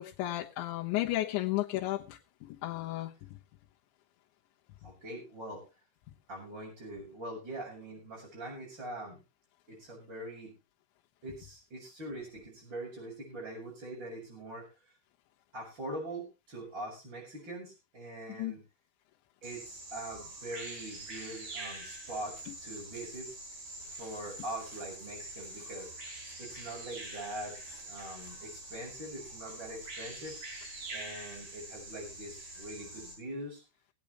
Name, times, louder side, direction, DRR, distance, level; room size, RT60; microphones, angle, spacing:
voice 1, 0.0-3.1 18.4-18.5, left 16 dB, 85° left, -3 dB, 3.5 m, -33 dB
voice 2, 4.8-5.6 6.3-9.2 9.7-10.5 11.2-14.7 15.5-18.6 19.4-23.3 23.9-25.9 26.4-30.4 30.9-33.6, right 1 dB, 25° right, -6 dB, 6.1 m, -43 dB
Bird vocalization bird call bird song, 19.4-33.1, right 2 dB, 55° right, 6.6 m, -45 dB
23.0 x 8.6 x 3.1 m, 0.27 s
omnidirectional pair, 5.2 m